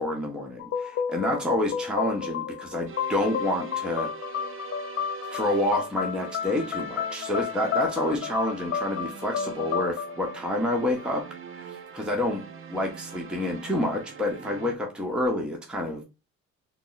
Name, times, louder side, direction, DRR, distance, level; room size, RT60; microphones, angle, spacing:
voice 1, 0.0-4.1 5.3-11.2 11.6-12.4 12.7-16.0, left 1 dB, 5° right, 0.8 m, -28 dB
sound 1, 0.6-11.2, left 7 dB, 50° left, 0.5 m, -32 dB
sound 2, 2.9-14.8, right 6 dB, 45° right, 0.6 m, -43 dB
3.6 x 2.0 x 3.9 m
cardioid pair, 90°, 30 cm